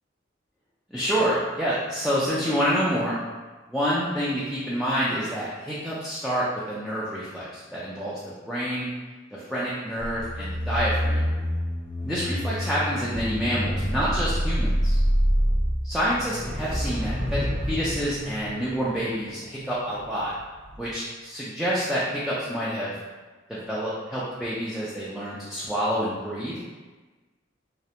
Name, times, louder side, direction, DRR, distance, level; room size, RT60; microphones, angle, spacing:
voice 1, 0.9-3.2 3.7-8.9 9.3-11.2 12.0-15.0 15.8-20.3 20.8-22.9 23.5-26.6, equal, ahead, -9 dB, 0.3 m, -28 dB
sound 1, 10.0-20.3 20.6-20.9, equal, 45° right, 0.9 m, -27 dB
2.4 x 2.1 x 2.8 m, 1.3 s
head